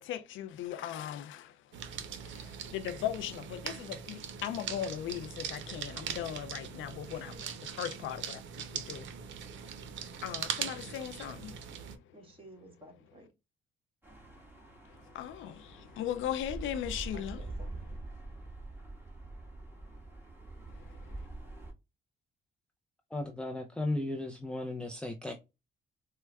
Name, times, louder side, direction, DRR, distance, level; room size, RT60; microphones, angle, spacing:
voice 1, 0.0-1.6 1.9-7.3 7.8-8.4 8.7-9.1 10.2-11.6 15.1-17.4 20.7-21.0, left 10 dB, 75° left, 0.4 m, -38 dB
sound 1, 1.7-12.0, right 8 dB, 75° right, 0.6 m, -41 dB
voice 2, 7.1-7.5 12.1-13.3 17.1-17.8, right 2 dB, 25° right, 1.5 m, -54 dB
sound 2, 14.0-21.7, right 2 dB, 10° right, 1.3 m, -45 dB
voice 3, 23.1-25.3, left 2 dB, 5° left, 0.5 m, -35 dB
4.5 x 2.1 x 2.2 m
cardioid pair, 90°, 20 cm